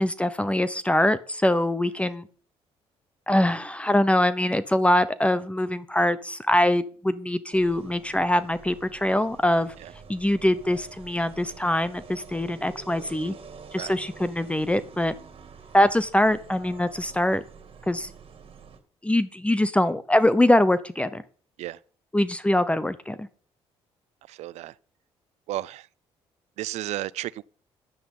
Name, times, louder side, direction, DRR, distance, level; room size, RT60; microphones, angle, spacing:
voice 1, 0.0-2.2 3.3-9.7 10.1-13.3 13.7-15.1 15.7-17.4 17.9-18.1 19.0-21.2 22.1-23.3, left 1 dB, 10° left, 0.8 m, -23 dB
sound 1, 7.5-18.8, right 5 dB, 50° right, 2.4 m, -47 dB
voice 2, 24.3-24.7 25.5-25.9 26.6-27.4, right 15 dB, 80° right, 0.5 m, -33 dB
10.5 x 9.4 x 5.5 m
supercardioid pair, 75°, 11 cm